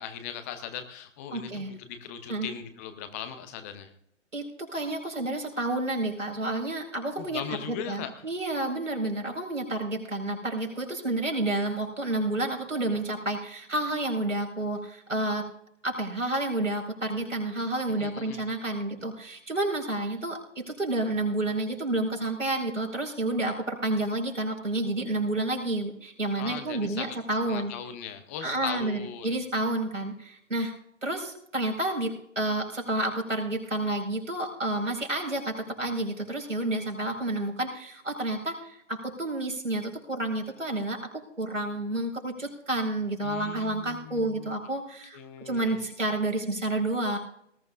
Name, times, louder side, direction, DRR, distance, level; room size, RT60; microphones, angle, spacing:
voice 1, 0.0-3.9 7.2-8.3 17.9-18.4 26.4-27.2 27.5-29.4 43.2-44.6 45.1-45.8, left 8 dB, 10° left, 9 dB, 0.7 m, -39 dB
voice 2, 1.3-1.7 2.3-2.5 4.3-7.4 7.7-15.4 15.8-27.7 28.4-30.7 31.0-47.2, right 2 dB, 80° right, 1 dB, 4.8 m, -30 dB
19.5 x 14.0 x 2.5 m, 0.69 s
figure-of-eight pair, 135°, 37 cm